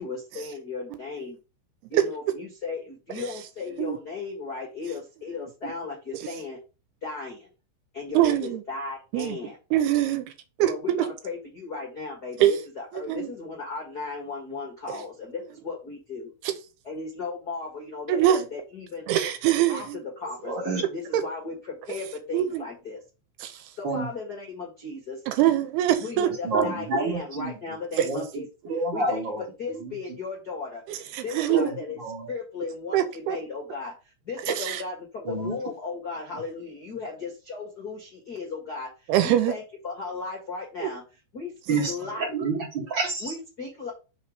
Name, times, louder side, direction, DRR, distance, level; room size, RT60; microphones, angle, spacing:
voice 1, 0.0-1.4 1.9-6.6 7.0-7.5 7.9-9.6 10.7-16.3 16.8-19.1 19.7-19.9 20.2-23.0 23.8-25.2 26.0-28.4 28.9-29.2 29.6-30.8 31.2-32.0 32.3-33.9 34.2-41.0 41.3-42.3 43.2-43.9, left 4 dB, 85° left, 0.8 m, -36 dB
voice 2, 8.1-8.6 9.1-9.4 9.7-10.2 10.6-11.1 12.4-12.6 12.9-13.3 16.4-16.5 18.1-18.5 19.1-20.0 21.1-21.2 22.3-22.6 23.4-23.6 25.3-26.3 26.5-26.6 28.0-28.1 30.9-31.7 32.9-33.4 34.4-34.8 39.1-39.5 40.8-40.9, right 12 dB, 80° right, 2.6 m, -23 dB
voice 3, 20.4-20.8 23.8-24.1 26.4-27.6 28.0-29.4 29.7-29.9 31.5-32.3 35.2-35.6 41.7-43.3, right 3 dB, 55° right, 1.3 m, -29 dB
5.7 x 4.1 x 5.0 m
omnidirectional pair, 4.8 m